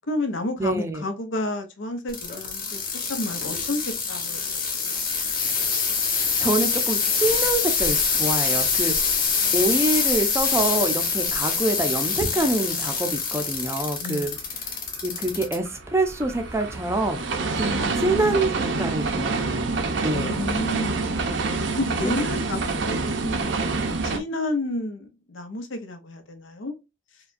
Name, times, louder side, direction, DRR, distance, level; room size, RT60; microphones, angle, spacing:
voice 1, 0.1-2.8 3.1-5.2 14.0-14.5 17.7-18.4 20.1-21.2 21.8-26.7, left 2 dB, 80° left, 0.8 m, -31 dB
voice 2, 0.6-1.1 6.0-14.3 14.7-17.2 17.6-17.7 18.0-18.5 18.8-19.7 20.0-20.4 22.0-22.1, right 2 dB, 15° right, 0.5 m, -26 dB
sound 1, 2.1-15.6 16.1-16.5 17.2-17.3, left 5 dB, 45° left, 1.0 m, -25 dB
sound 2, 14.9-24.2, right 3 dB, 65° right, 0.6 m, -27 dB
4.8 x 2.2 x 2.5 m
head